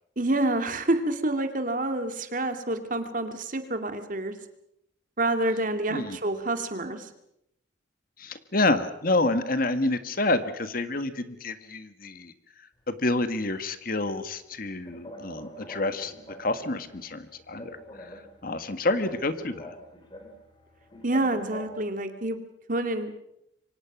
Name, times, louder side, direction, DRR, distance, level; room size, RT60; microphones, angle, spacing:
voice 1, 0.2-4.3 5.2-7.1 21.0-22.4 22.7-23.1, right 2 dB, 45° right, 7 dB, 2.4 m, -28 dB
voice 2, 8.2-12.3 12.9-16.1 16.4-17.7 18.0-18.1 18.4-19.7, left 2 dB, 50° left, 10 dB, 1.7 m, -28 dB
sound 1, 14.2-21.9, equal, 25° left, 5.1 m, -46 dB
27.0 x 24.5 x 6.1 m, 0.79 s
head